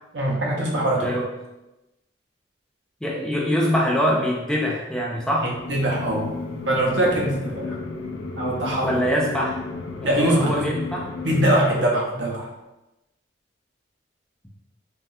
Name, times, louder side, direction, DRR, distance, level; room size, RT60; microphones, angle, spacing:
voice 1, 0.1-1.1 5.4-6.3 6.6-7.8 8.3-9.0 10.0-10.7 11.2-12.5, right 1 dB, 70° right, -2 dB, 0.7 m, -22 dB
voice 2, 0.9-1.3 3.0-5.5 8.8-9.6 10.0-11.1, equal, 5° left, -3 dB, 0.3 m, -24 dB
sound 1, 5.5-11.4, left 3 dB, 90° left, 0.4 m, -33 dB
3.3 x 2.2 x 2.6 m, 0.97 s
head